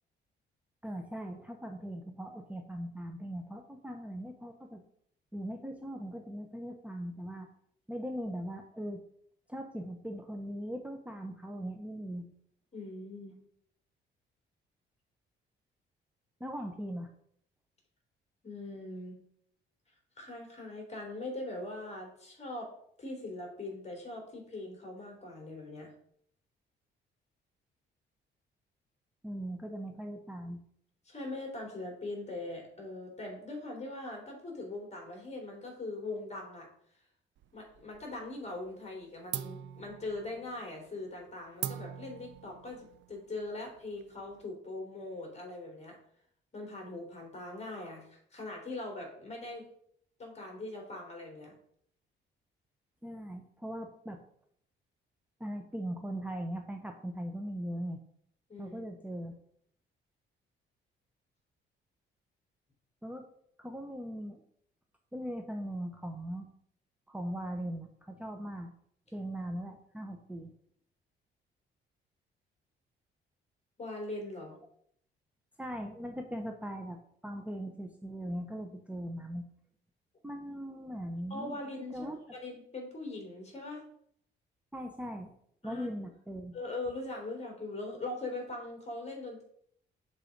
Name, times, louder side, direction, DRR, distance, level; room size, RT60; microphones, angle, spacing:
voice 1, 0.8-4.8 5.3-7.5 7.9-9.0 9.5-12.3 16.4-17.1 29.2-30.6 53.0-54.2 55.4-58.0 58.6-59.3 63.0-63.3 63.6-64.4 65.1-66.5 67.1-68.7 69.1-70.5 75.6-79.5 80.2-81.6 81.9-82.2 84.7-85.3 85.6-86.6, equal, 5° right, 3 dB, 0.7 m, -40 dB
voice 2, 12.7-13.3 18.4-19.2 20.2-22.7 23.0-25.9 31.0-36.7 37.5-46.0 46.5-49.6 50.2-51.5 58.5-58.8 73.8-74.6 81.3-83.8 85.6-85.9 86.5-89.4, left 2 dB, 35° left, 1 dB, 3.0 m, -41 dB
sound 1, 37.4-38.2 38.5-39.0 39.3-44.5, right 11 dB, 70° right, 0.5 m, -43 dB
6.6 x 4.0 x 5.1 m, 0.67 s
cardioid pair, 90°, 20 cm